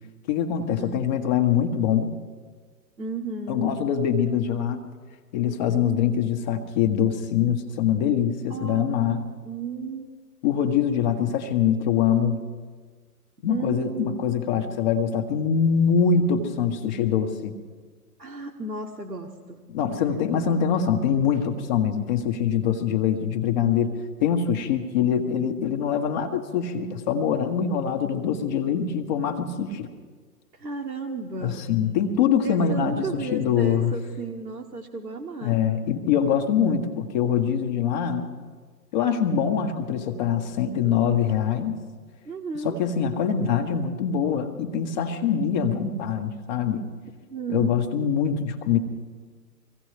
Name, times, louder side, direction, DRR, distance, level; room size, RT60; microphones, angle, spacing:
voice 1, 0.3-2.1 3.5-4.8 5.3-9.2 10.4-12.4 13.4-17.6 19.7-29.9 31.4-33.9 35.4-38.3 38.9-41.8 42.6-46.9 47.5-48.8, left 7 dB, 25° left, 6 dB, 1.1 m, -24 dB
voice 2, 3.0-3.7 5.4-5.5 8.5-8.9 9.4-10.1 13.5-14.9 18.2-19.6 30.5-31.7 32.4-35.6 42.3-42.8 47.2-47.7, right 4 dB, 85° right, -2 dB, 1.6 m, -34 dB
24.5 x 16.0 x 3.2 m, 1.5 s
figure-of-eight pair, 120°, 49 cm